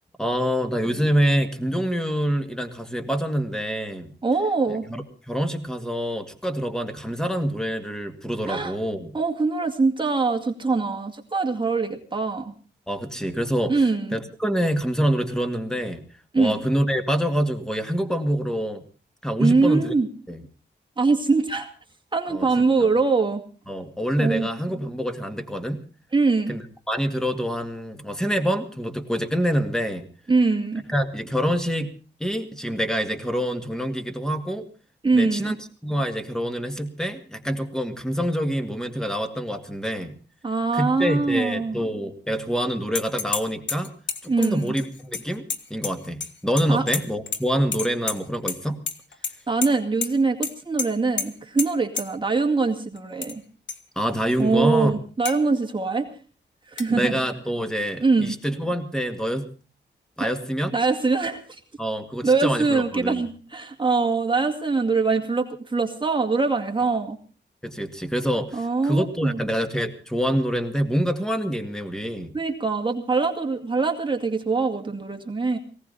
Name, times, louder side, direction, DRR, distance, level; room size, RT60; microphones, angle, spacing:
voice 1, 0.2-4.1 4.7-9.1 12.9-13.7 14.1-16.1 16.4-18.8 19.2-19.9 20.3-20.4 22.3-22.5 23.7-25.8 26.5-30.0 30.9-31.9 32.2-34.7 35.1-35.6 35.8-40.2 40.7-43.9 44.2-45.4 45.7-48.8 54.0-55.0 56.9-59.5 60.2-60.7 61.8-63.2 67.6-72.3, equal, 5° left, 8 dB, 2.1 m, -26 dB
voice 2, 4.2-4.8 8.5-8.7 9.1-12.5 13.7-14.2 16.3-16.6 19.4-20.1 21.0-21.7 22.1-23.4 24.2-24.5 26.1-26.6 30.3-30.8 35.0-35.5 40.4-41.8 44.3-44.7 46.7-46.8 49.5-53.4 54.4-56.1 56.7-57.2 58.0-58.3 60.2-60.3 60.7-61.6 62.2-67.2 68.5-69.4 72.3-75.6, right 4 dB, 25° right, 3 dB, 2.2 m, -23 dB
sound 1, 42.9-43.4 43.7-46.3 46.6-47.4 47.7-48.6 48.9-49.3 49.6-49.7 50.0-50.1 50.4-50.5 50.8-50.9 51.2-51.3 51.6-51.7 52.0-52.1 53.0-53.3 53.7-53.8 54.3-54.4 55.3-55.4 56.8-56.9, left 5 dB, 75° left, 1.7 m, -29 dB
19.0 x 17.0 x 4.1 m, 0.38 s
wide cardioid pair, 120°, 19 cm